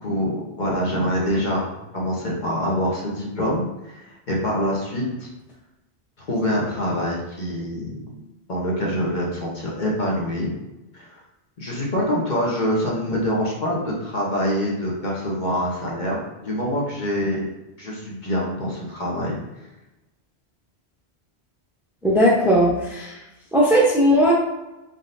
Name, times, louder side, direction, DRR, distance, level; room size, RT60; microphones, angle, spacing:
voice 1, 0.0-4.0 4.3-5.3 6.3-8.1 8.5-10.5 10.9-11.1 11.6-17.4 17.8-19.4, equal, 45° left, -3 dB, 1.0 m, -25 dB
voice 2, 22.0-23.1 23.5-24.3, equal, ahead, -3 dB, 0.5 m, -17 dB
3.9 x 3.8 x 2.6 m, 1.0 s
omnidirectional pair, 1.1 m